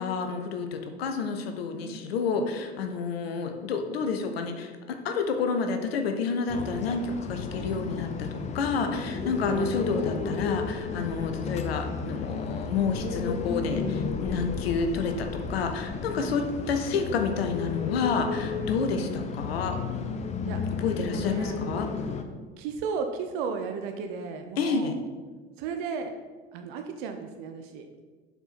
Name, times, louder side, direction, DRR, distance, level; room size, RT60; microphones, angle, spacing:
voice 1, 0.0-19.8 20.7-21.9 24.6-24.9, left 5 dB, 65° left, 6 dB, 0.8 m, -29 dB
sound 1, 6.5-22.2, left 4 dB, 20° left, 0.5 m, -33 dB
voice 2, 9.3-9.6 16.2-16.4 20.5-20.6 21.1-22.0 22.6-25.0 25.6-26.1 26.5-27.9, right 5 dB, 50° right, 6 dB, 0.6 m, -35 dB
6.8 x 4.4 x 4.2 m, 1.4 s
figure-of-eight pair, 70°, 32 cm